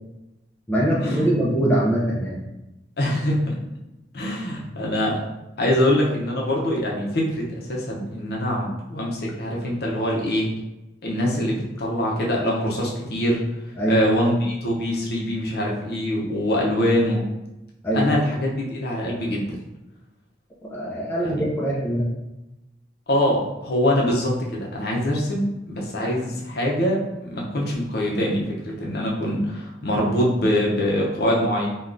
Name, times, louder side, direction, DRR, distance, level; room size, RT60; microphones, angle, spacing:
voice 1, 0.7-2.4 13.8-14.0 17.8-18.1 20.6-22.1, right 1 dB, 10° left, -5 dB, 0.4 m, -22 dB
voice 2, 3.0-3.4 4.1-5.2 5.6-10.5 11.0-13.4 13.9-17.2 17.9-19.4 21.2-21.4 23.1-31.7, equal, 60° left, -3 dB, 0.6 m, -24 dB
3.4 x 2.3 x 2.5 m, 0.96 s
head